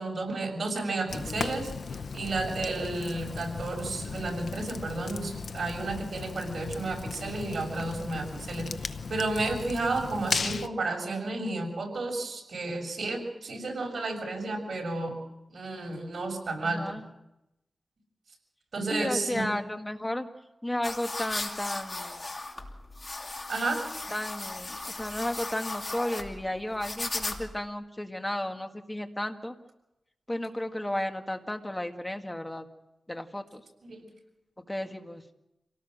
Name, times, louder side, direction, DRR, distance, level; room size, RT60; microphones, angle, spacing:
voice 1, 0.0-1.7 2.1-15.2 15.5-17.0 18.7-19.4 23.5-23.8 33.8-34.1, right 2 dB, 65° right, 1 dB, 7.0 m, -32 dB
Fire, 1.1-10.7, left 5 dB, 70° left, 0.8 m, -36 dB
voice 2, 16.6-17.0 18.9-20.3 20.6-22.2 24.1-29.6 30.3-32.7 33.1-33.6 34.6-35.2, left 1 dB, 15° left, 5 dB, 1.8 m, -33 dB
sound 1, 20.8-27.7, left 2 dB, 35° left, 2.6 m, -37 dB
27.0 x 18.0 x 6.5 m, 0.91 s
wide cardioid pair, 100°, 0 cm